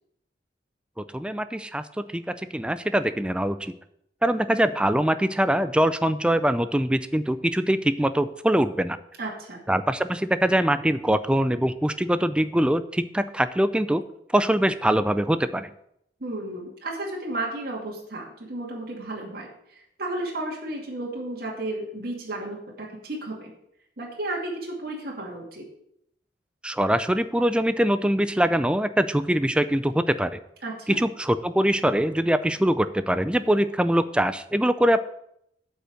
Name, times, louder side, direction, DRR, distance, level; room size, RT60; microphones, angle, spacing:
voice 1, 1.0-3.7 4.2-9.0 9.7-14.0 14.3-15.7 26.6-30.4 30.9-35.0, right 1 dB, 5° right, 12 dB, 0.4 m, -23 dB
voice 2, 9.2-9.6 16.2-19.5 20.0-23.5 24.0-25.7 30.6-31.0, right 2 dB, 60° right, -2 dB, 2.3 m, -33 dB
8.0 x 5.7 x 7.6 m, 0.75 s
head